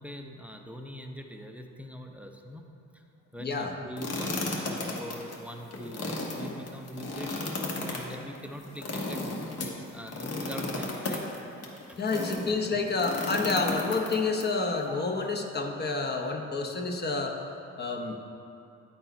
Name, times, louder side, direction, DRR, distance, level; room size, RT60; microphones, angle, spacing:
voice 1, 0.0-2.6 2.9-3.0 3.3-9.3 9.9-11.3 11.9-12.0 12.7-12.8 14.9-15.0, equal, 5° right, 3 dB, 0.5 m, -42 dB
voice 2, 3.4-3.7 4.3-4.5 12.0-17.4 17.8-18.2, left 3 dB, 35° left, 2 dB, 0.7 m, -29 dB
sound 1, 4.0-12.5 13.0-14.4, left 2 dB, 55° left, 1.2 m, -34 dB
9.2 x 4.4 x 4.4 m, 2.6 s
cardioid pair, 90°, 30 cm